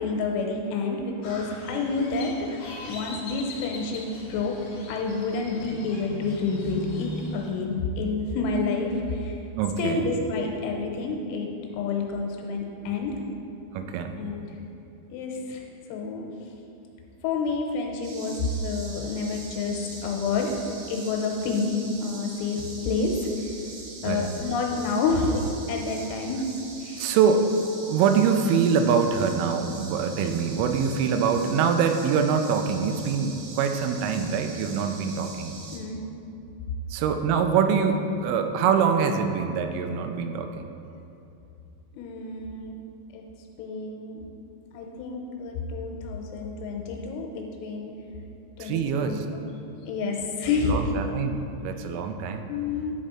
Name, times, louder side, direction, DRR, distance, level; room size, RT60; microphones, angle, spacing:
voice 1, 0.0-4.5 4.9-9.4 9.8-13.2 14.2-14.5 15.1-15.6 15.9-16.2 17.2-20.6 20.9-23.6 24.0-26.4 26.8-27.2 35.7-36.1 41.9-42.8 43.1-43.2 43.6-44.2 44.7-47.9 48.6-49.4 49.9-50.9 52.5-52.9, left 4 dB, 85° left, 1 dB, 3.1 m, -29 dB
Crow, 1.2-7.5, left 1 dB, 65° left, 2.3 m, -39 dB
voice 2, 9.6-10.1 13.7-14.6 24.0-24.3 27.0-27.5 27.9-35.6 36.9-40.7 48.6-49.3 50.7-52.5, right 6 dB, 85° right, 6 dB, 3.1 m, -24 dB
sound 1, 18.0-35.8, right 3 dB, 70° right, 2.6 m, -43 dB
10.0 x 5.2 x 4.2 m, 2.7 s
omnidirectional pair, 5.6 m